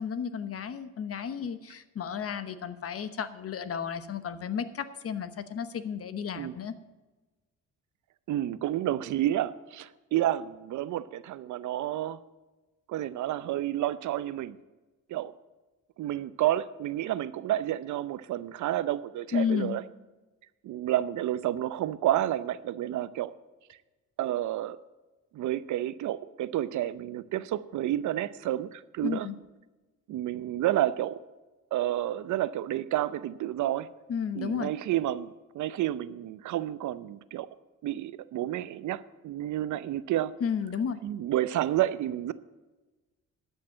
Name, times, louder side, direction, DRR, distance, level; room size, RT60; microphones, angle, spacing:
voice 1, 0.0-6.8 19.3-19.8 29.0-29.3 34.1-34.7 40.4-41.0, left 7 dB, 50° left, 12 dB, 1.0 m, -32 dB
voice 2, 8.3-12.2 12.9-14.6 15.1-15.3 16.0-19.8 20.6-23.3 24.2-24.8 25.3-29.3 30.1-31.2 31.7-33.9 34.3-37.5 37.8-40.3 41.0-42.3, right 13 dB, 75° right, 16 dB, 0.6 m, -30 dB
12.0 x 6.6 x 7.4 m, 1.2 s
cardioid pair, 90°, 30 cm